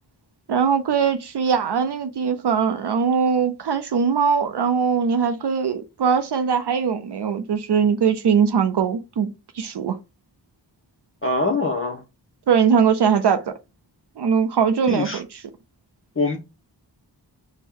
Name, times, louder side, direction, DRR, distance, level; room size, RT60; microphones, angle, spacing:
voice 1, 0.5-9.3 9.6-10.0 12.5-13.5 14.2-15.2, right 6 dB, 65° right, 0.5 m, -21 dB
voice 2, 11.2-12.0 14.9-15.2 16.2-16.4, left 3 dB, 30° left, 0.7 m, -23 dB
4.3 x 2.1 x 3.5 m
wide cardioid pair, 45°, 44 cm